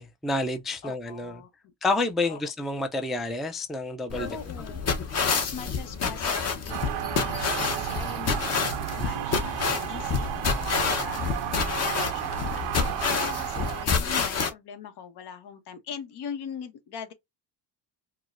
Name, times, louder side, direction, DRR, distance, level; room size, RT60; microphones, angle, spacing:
voice 1, 0.0-1.4 1.8-4.4, left 2 dB, ahead, 0.3 m, -29 dB
voice 2, 0.8-1.7 2.3-2.4 4.1-17.1, left 7 dB, 70° left, 1.1 m, -42 dB
sound 1, 4.1-14.5, left 5 dB, 35° left, 0.9 m, -28 dB
sound 2, 6.7-13.9, right 14 dB, 85° right, 0.6 m, -33 dB
4.6 x 2.1 x 2.5 m
cardioid pair, 140°, 42 cm